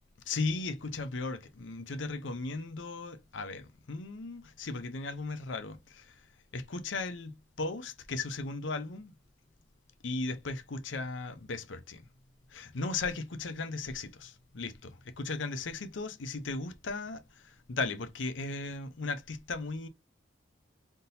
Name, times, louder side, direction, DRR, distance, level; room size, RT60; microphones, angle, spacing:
voice 1, 0.3-6.1 6.5-9.1 10.0-12.0 12.5-19.9, left 3 dB, 80° left, 0.7 m, -36 dB
3.7 x 2.7 x 4.0 m
head